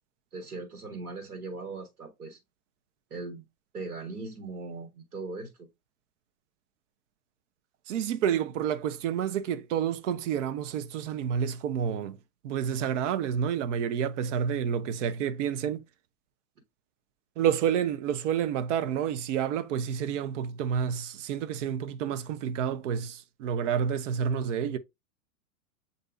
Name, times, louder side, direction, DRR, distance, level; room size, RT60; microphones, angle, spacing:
voice 1, 0.3-2.4 3.1-3.4 3.7-5.7, right 3 dB, 85° right, 1.4 m, -39 dB
voice 2, 7.9-12.2 12.4-15.8 17.4-24.8, right 8 dB, 55° right, 0.7 m, -29 dB
7.9 x 2.7 x 2.5 m
hypercardioid pair, 115°, 44 cm